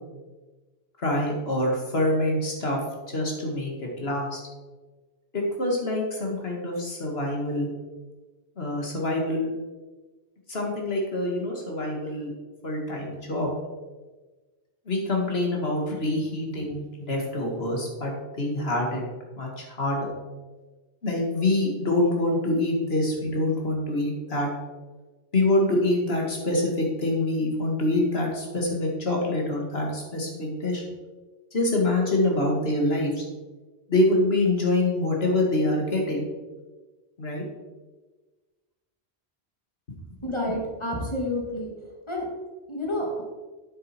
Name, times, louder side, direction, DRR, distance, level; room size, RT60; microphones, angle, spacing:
voice 1, 1.0-2.8 3.1-4.4 5.3-7.7 8.6-9.5 10.5-12.3 12.6-13.5 14.9-18.1 18.4-19.0 19.4-20.1 21.0-24.5 25.3-30.8 31.5-33.2 33.9-36.2 37.2-37.4, left 1 dB, 70° left, 0 dB, 2.3 m, -25 dB
voice 2, 40.2-41.7 42.1-42.3 42.7-43.2, left 1 dB, 25° left, -1 dB, 2.3 m, -29 dB
8.9 x 7.7 x 4.5 m, 1.3 s
omnidirectional pair, 1.1 m